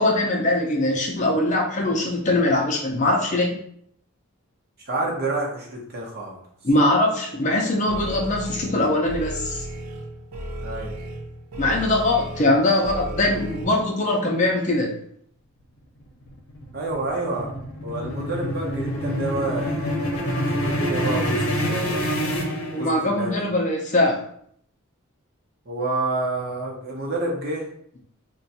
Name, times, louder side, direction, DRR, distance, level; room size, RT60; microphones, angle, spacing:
voice 1, 0.0-3.5 6.6-9.6 11.6-14.9 22.7-24.2, left 1 dB, 35° left, 0 dB, 0.5 m, -21 dB
voice 2, 4.9-6.4 10.6-10.9 16.7-17.5 17.8-19.7 20.4-22.1 22.8-23.5 25.7-27.7, right 2 dB, 45° right, -2 dB, 0.7 m, -28 dB
sound 1, 7.9-13.6, right 1 dB, 85° right, 0.6 m, -34 dB
sound 2, 16.0-23.3, equal, 75° left, 0.7 m, -26 dB
2.5 x 2.2 x 4.0 m, 0.66 s
head